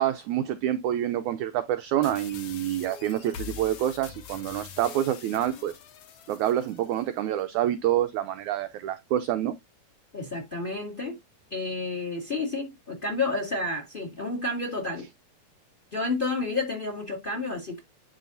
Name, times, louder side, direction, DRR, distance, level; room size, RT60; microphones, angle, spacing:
voice 1, 0.0-5.8 6.3-9.6, right 12 dB, 85° right, 1.6 m, -27 dB
sound 1, 2.0-7.0, left 9 dB, 70° left, 1.5 m, -43 dB
voice 2, 10.1-11.1 11.5-15.1 15.9-17.8, left 3 dB, 20° left, 1.6 m, -30 dB
11.0 x 3.9 x 2.5 m
omnidirectional pair, 4.1 m